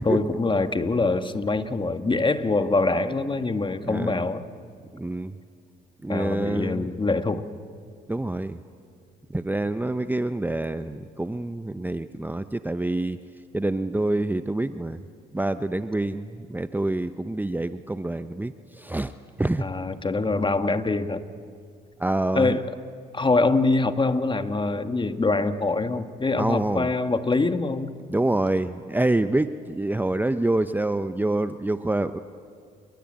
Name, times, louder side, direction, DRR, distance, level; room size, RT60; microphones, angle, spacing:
voice 1, 0.0-4.4 6.1-7.5 19.6-21.2 22.3-22.6 23.1-27.9, left 3 dB, 25° left, 9 dB, 1.7 m, -24 dB
voice 2, 3.8-4.3 4.9-5.4 6.0-6.9 8.1-8.6 9.3-13.2 13.5-15.0 15.3-19.1 19.4-19.7 22.0-22.6 26.4-26.9 28.1-32.2, right 2 dB, 10° right, 11 dB, 0.8 m, -26 dB
29.0 x 22.0 x 8.9 m, 2.2 s
supercardioid pair, 65°, 19 cm